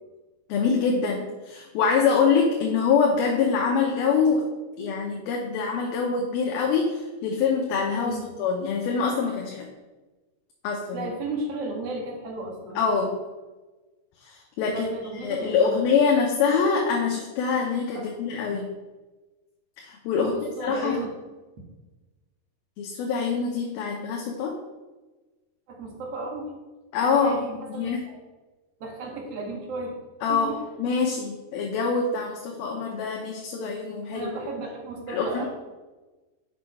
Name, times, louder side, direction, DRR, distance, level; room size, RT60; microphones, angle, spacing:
voice 1, 0.5-4.4 4.8-9.7 10.6-11.1 12.8-13.1 14.2-14.9 15.1-18.7 19.8-20.3 20.6-21.0 22.8-24.5 26.9-28.0 30.2-34.3 35.1-35.5, left 5 dB, 75° left, 0 dB, 2.6 m, -25 dB
voice 2, 10.9-12.8 14.7-15.8 18.0-18.1 20.2-21.1 25.7-26.5 27.1-28.0 28.8-29.9 30.3-30.6 34.1-35.5, right 2 dB, 50° right, -1 dB, 2.2 m, -34 dB
6.6 x 6.4 x 5.4 m, 1.2 s
omnidirectional pair, 4.5 m